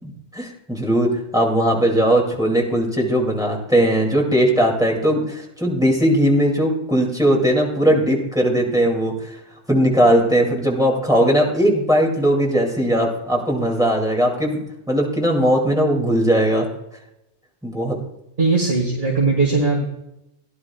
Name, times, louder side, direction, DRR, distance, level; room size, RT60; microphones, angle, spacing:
voice 1, 0.0-9.1 9.7-14.6 14.9-16.7 17.6-18.0, equal, 5° right, 0 dB, 2.3 m, -19 dB
voice 2, 18.4-19.8, right 3 dB, 50° right, -2 dB, 2.2 m, -19 dB
17.0 x 11.0 x 2.3 m, 0.86 s
omnidirectional pair, 1.3 m